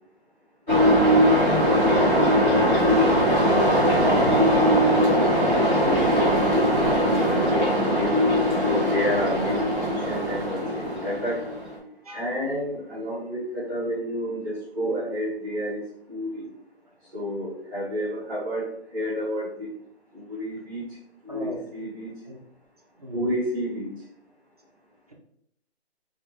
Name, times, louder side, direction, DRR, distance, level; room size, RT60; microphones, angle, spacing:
sound 1, 0.7-11.8, equal, 15° left, 1.3 m, -20 dB
voice 1, 2.0-4.3 5.7-6.1 6.8-8.2 8.6-11.4 12.1-15.8 16.1-16.5 17.1-18.7 18.9-19.7 20.1-20.8 21.2-22.1 23.1-23.9, equal, 15° right, -10 dB, 1.1 m, -30 dB
voice 2, 21.3-21.6 22.3-22.4 23.0-23.3, equal, 35° right, 1 dB, 0.5 m, -38 dB
3.5 x 2.1 x 3.0 m, 0.70 s
hypercardioid pair, 165°, 33 cm